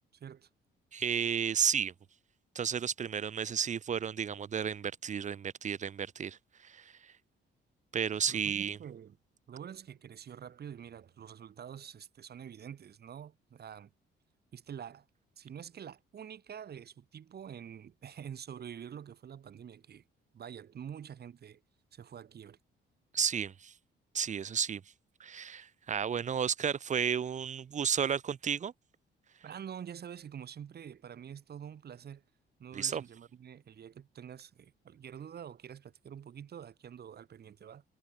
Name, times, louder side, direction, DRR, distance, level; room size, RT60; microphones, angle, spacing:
voice 1, 0.9-1.9 2.5-7.1 7.9-8.8 23.1-23.7 24.1-24.8 25.2-28.7 32.7-33.0, right 7 dB, 40° right, 0.7 m, -32 dB
voice 2, 8.3-9.2 9.5-13.9 14.5-15.1 15.4-20.0 20.3-21.6 21.9-22.6 29.4-32.2 32.6-37.8, right 8 dB, 55° right, 2.2 m, -47 dB
cardioid pair, 90°, 20 cm